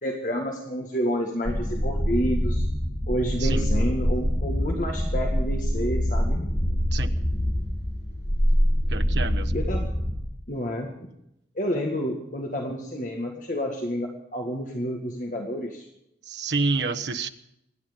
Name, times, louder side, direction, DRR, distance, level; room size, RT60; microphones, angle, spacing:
voice 1, 0.0-2.7 3.1-6.5 9.5-9.9 10.5-10.9 11.6-15.9, equal, 45° left, 1 dB, 1.8 m, -29 dB
sound 1, 1.5-10.2, equal, 20° left, 2.2 m, -25 dB
voice 2, 8.9-9.5 16.3-17.3, right 3 dB, 85° right, 6 dB, 1.2 m, -28 dB
26.0 x 10.5 x 5.2 m, 0.81 s
head